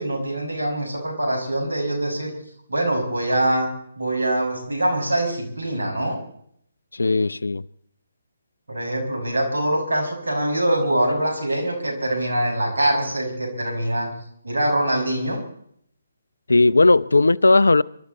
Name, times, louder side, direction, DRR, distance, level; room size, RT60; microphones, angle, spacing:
voice 1, 0.0-2.3 2.7-3.7 4.0-6.2 8.7-14.1 14.4-15.4, right 1 dB, 80° right, 1 dB, 6.3 m, -23 dB
voice 2, 6.9-7.6 16.5-17.8, left 3 dB, 80° left, 21 dB, 0.6 m, -16 dB
25.5 x 13.0 x 4.2 m, 0.66 s
figure-of-eight pair, 145°, 0 cm